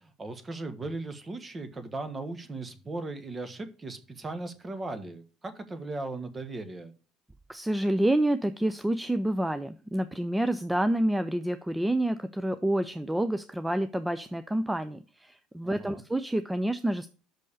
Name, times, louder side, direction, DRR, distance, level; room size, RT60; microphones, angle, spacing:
voice 1, 0.0-6.9 15.6-16.0, right 2 dB, 25° right, 11 dB, 1.4 m, -37 dB
voice 2, 7.5-17.1, right 1 dB, 10° right, 12 dB, 0.5 m, -28 dB
6.3 x 5.3 x 6.7 m, 0.38 s
hypercardioid pair, 70°, 0 cm